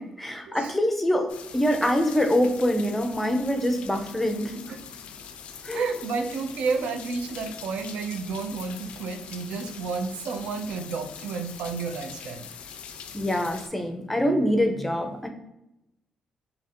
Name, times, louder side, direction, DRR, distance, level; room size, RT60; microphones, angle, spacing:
voice 1, 0.0-4.6 5.6-5.8 13.1-15.3, equal, 5° left, 4 dB, 0.4 m, -25 dB
sound 1, 1.3-13.7, left 7 dB, 70° left, 0.3 m, -43 dB
voice 2, 5.7-12.5, right 4 dB, 80° right, 6 dB, 0.5 m, -31 dB
2.7 x 2.5 x 4.2 m, 0.87 s
cardioid pair, 145°, 2 cm